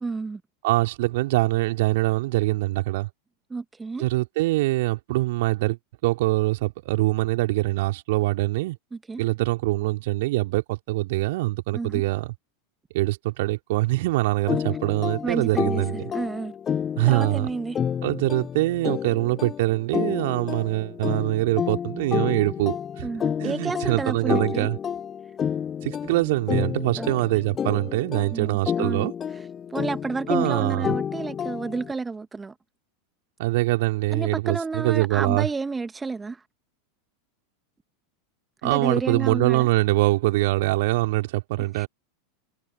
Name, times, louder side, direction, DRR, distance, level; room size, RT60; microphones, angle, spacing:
voice 1, 0.0-0.4 3.5-4.1 8.9-9.2 11.7-12.0 15.2-16.5 17.1-17.8 23.0-24.7 27.0-27.1 28.3-32.5 34.1-36.4 38.6-39.7 41.6-41.9, right 4 dB, 15° right, 1.4 m, -31 dB
voice 2, 0.6-3.1 4.0-5.8 6.0-8.8 9.2-12.3 12.9-16.0 17.0-17.5 18.0-23.1 23.4-24.8 25.8-29.1 30.3-30.9 33.4-35.5 38.6-41.9, right 19 dB, 60° right, 3.5 m, -24 dB
sound 1, 14.5-31.9, left 8 dB, 25° left, 3.1 m, -30 dB
figure-of-eight pair, 85°, 0 cm